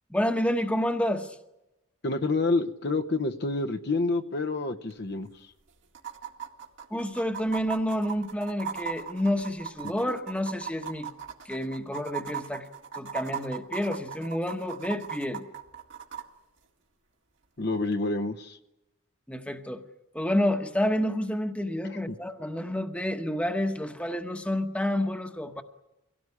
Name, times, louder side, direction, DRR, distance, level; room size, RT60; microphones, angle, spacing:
voice 1, 0.1-1.4 6.9-11.1 11.4-12.7 12.9-15.5 19.3-19.8 20.1-25.6, left 1 dB, 5° left, 6 dB, 1.1 m, -29 dB
voice 2, 2.0-5.5 9.8-9.9 17.6-18.6 21.9-22.2, left 3 dB, 50° left, 5 dB, 0.9 m, -28 dB
sound 1, 4.9-5.0 5.2-5.3 5.9-16.2 17.9-18.0, right 8 dB, 60° right, 2.0 m, -38 dB
24.5 x 17.5 x 9.8 m, 0.99 s
head